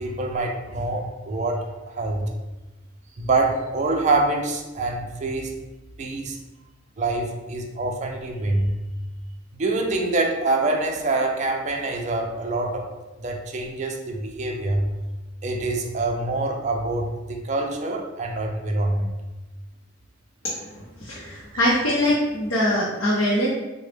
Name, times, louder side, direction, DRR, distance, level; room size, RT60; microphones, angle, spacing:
voice 1, 0.0-2.3 3.2-5.5 6.0-6.4 7.0-8.8 9.5-12.9 13.2-14.9 15.4-19.1 21.6-21.8, right 2 dB, 35° right, 1 dB, 0.4 m, -25 dB
voice 2, 21.0-23.5, left 1 dB, 80° left, -5 dB, 0.6 m, -22 dB
3.9 x 2.0 x 3.2 m, 1.1 s
head